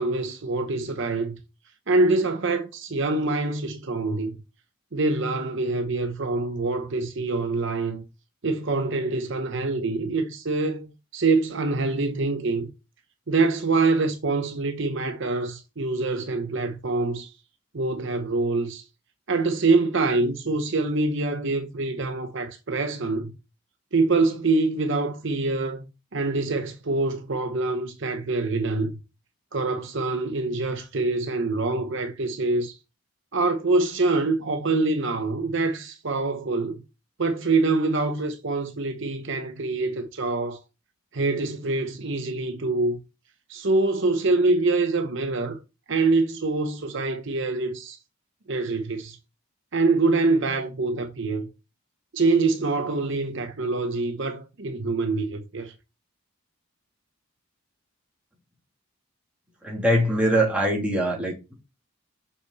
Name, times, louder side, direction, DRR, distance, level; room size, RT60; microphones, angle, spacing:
voice 1, 0.0-1.4 1.9-4.4 4.9-8.0 8.4-12.7 13.3-17.3 17.7-18.8 19.3-23.4 23.9-29.0 29.5-32.8 33.3-36.8 37.2-40.6 41.1-43.0 43.5-45.6 45.9-48.0 48.5-49.2 49.7-51.5 52.1-55.7, right 3 dB, 60° right, 0.8 m, -25 dB
voice 2, 59.6-61.5, right 1 dB, 5° right, 2.9 m, -23 dB
6.5 x 5.8 x 4.0 m
head